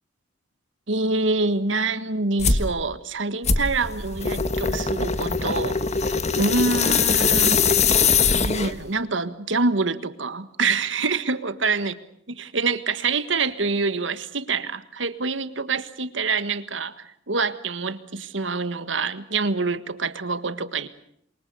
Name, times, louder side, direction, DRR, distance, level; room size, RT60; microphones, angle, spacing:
voice 1, 0.9-5.8 6.4-7.6 8.4-11.9 12.3-20.9, right 3 dB, 75° right, 12 dB, 1.6 m, -26 dB
sound 1, 2.4-2.7 3.4-8.9, left 5 dB, 35° left, 1.4 m, -21 dB
28.0 x 23.5 x 6.9 m, 0.70 s
head